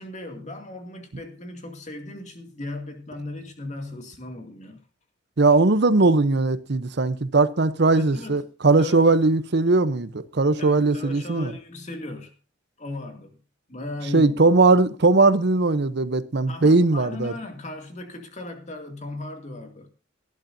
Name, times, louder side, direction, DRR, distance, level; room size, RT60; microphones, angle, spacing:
voice 1, 0.0-4.8 7.9-8.4 8.8-9.0 10.6-12.3 12.8-13.4 13.7-14.4 16.5-19.9, left 2 dB, 40° left, 2.3 m, -37 dB
voice 2, 5.4-11.5 14.1-17.3, right 3 dB, 60° right, 0.8 m, -19 dB
18.5 x 12.0 x 2.7 m
head